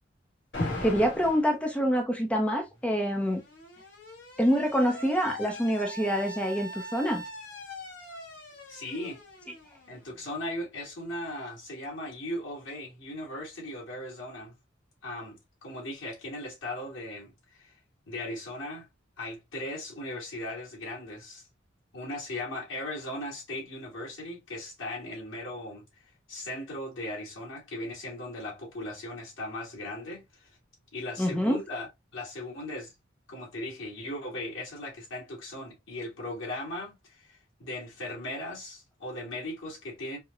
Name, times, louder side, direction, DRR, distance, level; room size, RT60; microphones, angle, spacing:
Alarm, 0.5-1.5 2.7-10.4, left 1 dB, 70° left, 1.3 m, -40 dB
voice 1, 0.8-3.4 4.4-7.2 31.2-31.6, equal, 5° left, 0.5 m, -26 dB
voice 2, 8.7-9.2 9.9-14.5 15.0-17.7 18.1-18.9 19.2-21.4 21.9-25.8 26.3-30.5 30.9-32.9 33.3-40.2, left 1 dB, 90° left, 1.9 m, -38 dB
4.7 x 2.1 x 2.3 m
head